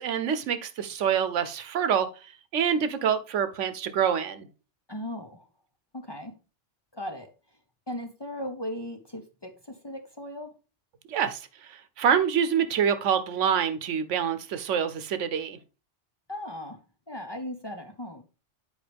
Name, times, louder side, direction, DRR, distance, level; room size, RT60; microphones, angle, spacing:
voice 1, 0.0-2.1 2.5-4.5 11.1-15.6, right 8 dB, 85° right, 1.1 m, -26 dB
voice 2, 4.9-5.5 5.9-6.3 6.9-7.3 7.9-10.5 16.3-16.8 17.1-18.2, left 1 dB, 25° left, 0.6 m, -37 dB
9.3 x 4.7 x 3.4 m
omnidirectional pair, 1.2 m